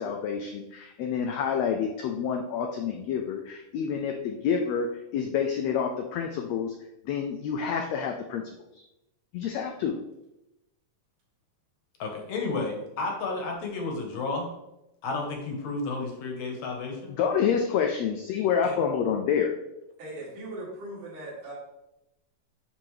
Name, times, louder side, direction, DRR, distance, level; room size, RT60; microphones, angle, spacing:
voice 1, 0.0-6.7 7.1-8.5 9.3-10.0 17.2-19.5, left 7 dB, 90° left, 3 dB, 1.5 m, -28 dB
voice 2, 12.0-14.5 15.0-17.1 18.6-18.8, left 3 dB, 70° left, 1 dB, 2.1 m, -32 dB
voice 3, 20.0-21.5, right 1 dB, 70° right, -6 dB, 3.7 m, -39 dB
10.0 x 3.9 x 3.1 m, 0.91 s
omnidirectional pair, 3.7 m